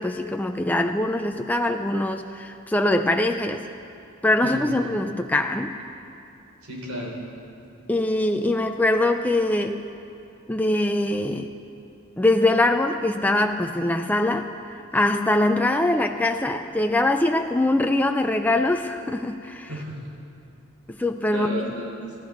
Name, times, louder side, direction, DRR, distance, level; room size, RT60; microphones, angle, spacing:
voice 1, 0.0-3.7 4.2-5.7 7.9-9.8 10.5-11.5 12.2-19.7 21.0-21.6, left 1 dB, 10° left, 5 dB, 0.4 m, -23 dB
voice 2, 4.4-4.8 6.6-7.2 19.7-20.0 21.3-22.1, right 1 dB, 90° right, -3 dB, 4.3 m, -33 dB
25.5 x 13.5 x 3.9 m, 2.8 s
head